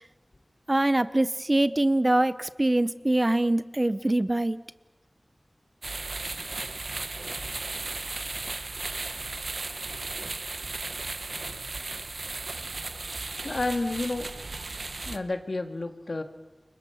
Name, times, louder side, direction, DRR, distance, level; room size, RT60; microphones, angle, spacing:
voice 1, 0.7-4.6, right 1 dB, 35° right, 15 dB, 0.8 m, -24 dB
sound 1, 5.8-15.2, right 3 dB, 80° right, 1.0 m, -35 dB
voice 2, 13.2-14.3 15.1-16.2, left 2 dB, 70° left, 7 dB, 1.9 m, -31 dB
28.5 x 24.0 x 5.8 m, 1.1 s
wide cardioid pair, 55°, 0 cm